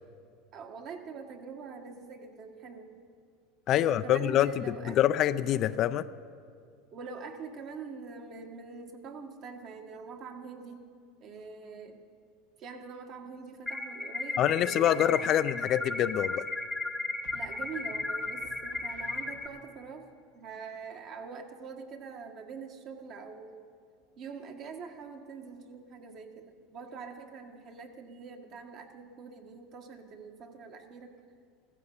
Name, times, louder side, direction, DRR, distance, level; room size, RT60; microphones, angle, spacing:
voice 1, 0.5-2.9 3.7-5.0 6.9-10.9 11.2-12.0 12.6-15.4 17.3-20.1 20.3-23.6 24.2-31.2, right 5 dB, 45° right, 4 dB, 1.6 m, -44 dB
voice 2, 3.7-6.1 14.4-16.4, left 11 dB, 45° left, 13 dB, 0.4 m, -26 dB
sound 1, 13.7-19.5, left 2 dB, 10° left, 0.8 m, -35 dB
sound 2, 17.2-19.9, right 2 dB, 65° right, 1.9 m, -55 dB
15.5 x 15.0 x 5.5 m, 2.3 s
supercardioid pair, 115°, 0 cm